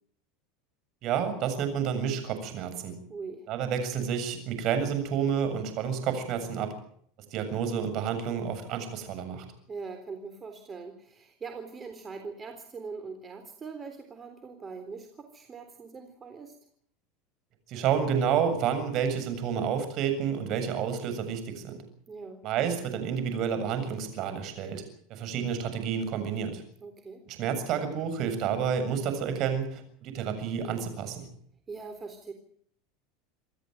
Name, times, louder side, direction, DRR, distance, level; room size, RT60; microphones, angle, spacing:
voice 1, 1.0-2.9 3.5-6.7 7.3-9.5 17.7-21.8 22.4-24.8 25.1-26.6 27.3-31.3, right 7 dB, 50° right, 9 dB, 7.3 m, -30 dB
voice 2, 3.1-3.5 9.7-16.5 22.1-22.4 26.8-27.2 31.7-32.3, right 4 dB, 25° right, 6 dB, 3.7 m, -42 dB
27.5 x 13.5 x 9.2 m, 0.63 s
supercardioid pair, 115°, 0 cm